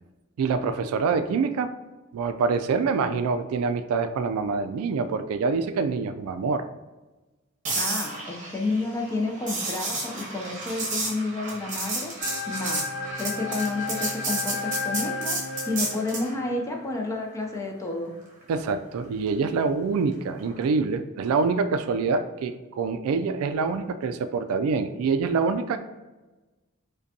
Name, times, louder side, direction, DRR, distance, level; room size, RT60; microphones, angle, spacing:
voice 1, 0.4-1.7 2.1-6.7 18.5-25.8, right 4 dB, 90° right, 9 dB, 0.3 m, -26 dB
sound 1, 7.6-16.3 20.5-20.7, right 2 dB, 35° right, 1.0 m, -31 dB
voice 2, 7.7-12.1 12.5-12.9 13.2-15.4 15.7-18.1, left 2 dB, 15° left, 1 dB, 0.5 m, -30 dB
sound 2, 12.2-16.7, left 5 dB, 50° left, 1.0 m, -34 dB
5.1 x 2.2 x 2.7 m, 1.2 s
head